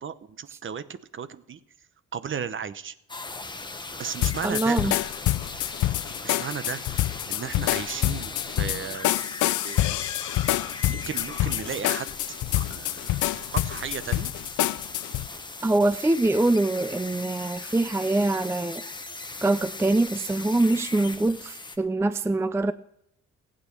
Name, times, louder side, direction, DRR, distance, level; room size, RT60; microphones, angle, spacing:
voice 1, 0.0-1.6 2.1-2.9 4.0-4.8 6.2-9.1 9.4-10.0 10.9-12.1 12.6-14.3, right 7 dB, 40° right, 0.9 m, -35 dB
sound 1, 3.1-21.8, left 3 dB, 15° left, 1.3 m, -39 dB
sound 2, 4.2-15.3, left 16 dB, 80° left, 0.5 m, -27 dB
voice 2, 4.4-5.0 15.6-18.8 19.4-22.7, right 2 dB, 10° right, 0.4 m, -24 dB
15.5 x 8.9 x 6.6 m
cardioid pair, 90°, 30 cm